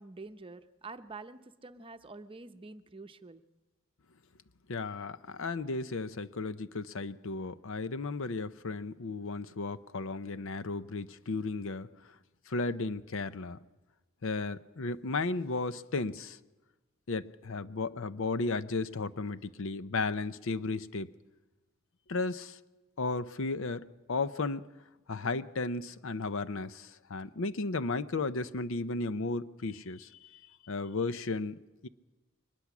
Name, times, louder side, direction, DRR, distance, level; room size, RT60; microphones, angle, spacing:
voice 1, 0.0-3.4, right 3 dB, 25° right, 9 dB, 0.8 m, -47 dB
voice 2, 4.7-11.9 12.5-13.6 14.2-16.4 17.1-21.1 22.1-22.6 23.0-24.6 25.1-31.9, left 3 dB, 65° left, 14 dB, 0.7 m, -34 dB
22.5 x 20.0 x 6.1 m, 1.2 s
head